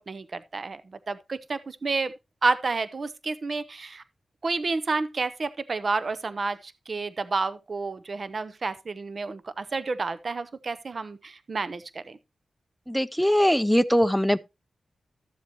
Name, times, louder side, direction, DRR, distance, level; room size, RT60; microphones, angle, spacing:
voice 1, 0.0-2.1 2.4-4.0 4.4-12.2, right 3 dB, 55° right, 0.7 m, -30 dB
voice 2, 12.9-14.4, equal, ahead, 0.5 m, -21 dB
13.0 x 7.4 x 2.9 m
cardioid pair, 55°, 0 cm